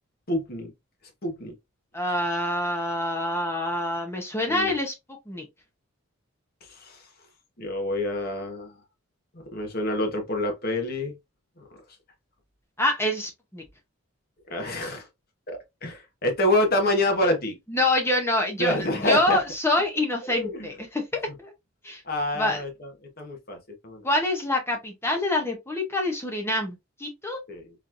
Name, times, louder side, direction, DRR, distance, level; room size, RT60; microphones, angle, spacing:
voice 1, 0.3-0.7 1.2-1.5 4.5-4.7 6.7-7.1 7.6-8.8 9.3-11.2 11.6-11.7 14.5-15.1 15.5-17.6 18.6-19.4 20.3-20.7 22.0-22.9 23.2-23.6 23.8-24.1 27.5-27.7, left 1 dB, 45° left, 1.1 m, -27 dB
voice 2, 1.9-4.9 5.3-5.4 12.8-13.6 17.7-21.5 21.8-22.0 22.4-22.6 24.0-27.4, left 1 dB, 10° left, 0.7 m, -26 dB
4.0 x 3.1 x 2.5 m
head